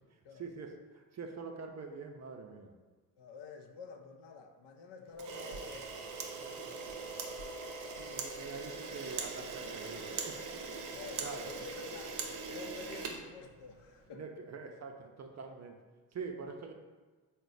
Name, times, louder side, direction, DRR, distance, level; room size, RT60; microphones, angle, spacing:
voice 1, 0.1-2.7 8.0-10.7 11.2-11.5 14.1-15.8 16.1-16.7, right 5 dB, 35° right, 3 dB, 0.5 m, -45 dB
voice 2, 3.2-7.3 10.9-12.2 12.5-14.2, left 4 dB, 60° left, 4 dB, 0.6 m, -50 dB
Camera, 5.2-13.9, right 4 dB, 75° right, 0.6 m, -41 dB
3.8 x 2.2 x 3.8 m, 1.4 s
hypercardioid pair, 40°, 49 cm